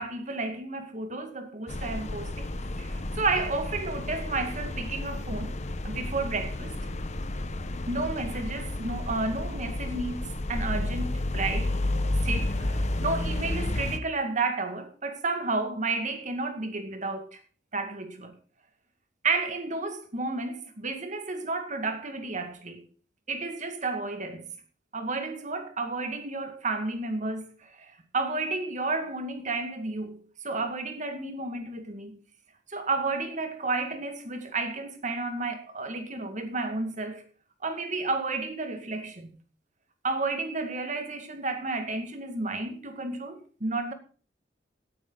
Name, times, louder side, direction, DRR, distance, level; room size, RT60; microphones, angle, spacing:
voice 1, 0.0-2.5 2.8-5.6 5.8-6.7 7.9-11.8 12.2-17.4 17.7-18.4 19.2-22.9 23.3-24.5 24.9-32.2 32.7-37.2 37.6-39.4 40.0-43.9, right 3 dB, 45° right, 2.0 m, -32 dB
sound 1, 1.7-14.0, left 1 dB, 40° left, 1.0 m, -31 dB
17.5 x 10.5 x 4.0 m
head